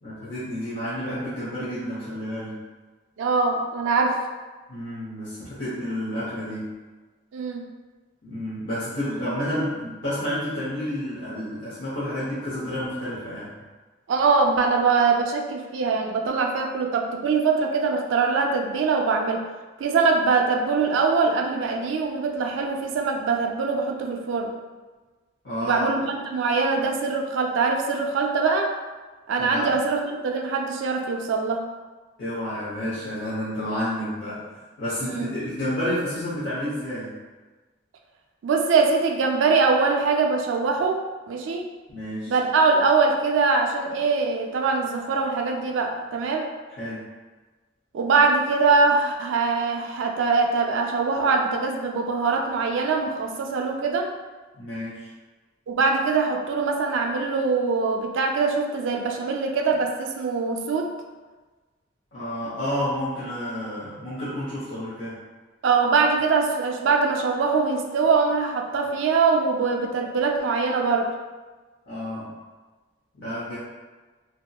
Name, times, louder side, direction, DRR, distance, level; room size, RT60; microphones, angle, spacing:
voice 1, 0.0-2.6 4.7-6.7 8.2-13.6 25.4-25.9 29.4-29.7 32.2-34.5 34.8-37.2 41.9-42.3 46.8-47.1 54.5-55.1 62.1-65.2 71.9-72.3 73.1-73.6, equal, 65° left, -11 dB, 0.7 m, -30 dB
voice 2, 3.2-4.2 7.3-7.6 14.1-19.4 19.8-24.5 25.6-28.7 29.3-31.6 35.0-35.3 38.4-41.7 42.3-46.5 47.9-54.1 55.7-60.9 65.6-71.1, right 4 dB, 75° right, 2 dB, 0.3 m, -23 dB
2.7 x 2.1 x 2.2 m, 1.3 s
head